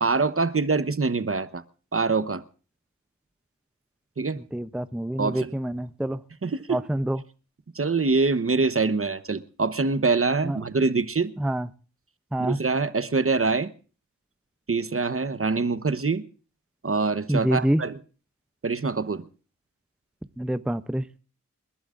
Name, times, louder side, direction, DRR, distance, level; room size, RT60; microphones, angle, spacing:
voice 1, 0.0-1.6 1.9-2.4 4.2-4.4 5.2-5.5 6.4-6.8 7.7-11.3 12.4-13.7 14.7-16.2 16.8-18.0 18.6-19.2, right 4 dB, 45° right, 1.0 m, -24 dB
voice 2, 4.5-6.2 6.7-7.2 10.4-10.6 11.4-11.7 12.3-12.6 17.3-17.8 20.4-21.0, right 1 dB, 5° right, 0.5 m, -26 dB
28.5 x 12.0 x 2.5 m
wide cardioid pair, 70°, 32 cm